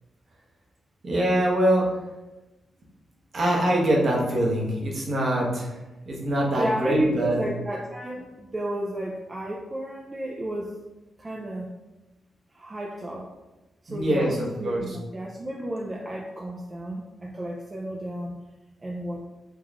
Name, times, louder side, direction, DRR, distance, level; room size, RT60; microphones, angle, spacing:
voice 1, 1.0-1.8 3.3-5.7 6.1-7.4 13.9-15.0, right 1 dB, 50° right, -3 dB, 0.9 m, -24 dB
voice 2, 6.6-10.8 11.2-11.7 12.5-13.3 13.8-18.3 18.8-19.2, right 1 dB, 25° right, -3 dB, 0.4 m, -32 dB
3.6 x 3.0 x 2.4 m, 1.1 s
wide cardioid pair, 115°, 0 cm